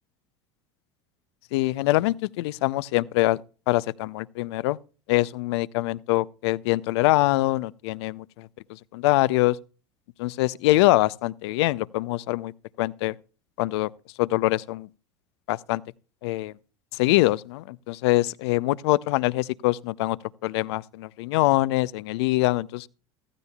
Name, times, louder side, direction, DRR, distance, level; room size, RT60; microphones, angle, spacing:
voice 1, 1.5-3.4 3.7-4.8 5.1-8.5 8.9-9.6 10.2-12.5 12.8-13.1 13.6-13.9 14.2-14.9 15.5-15.8 16.2-16.5 16.9-20.2 20.4-22.9, left 19 dB, 70° left, 0.4 m, -24 dB
15.0 x 14.5 x 2.3 m
hypercardioid pair, 80°, 14 cm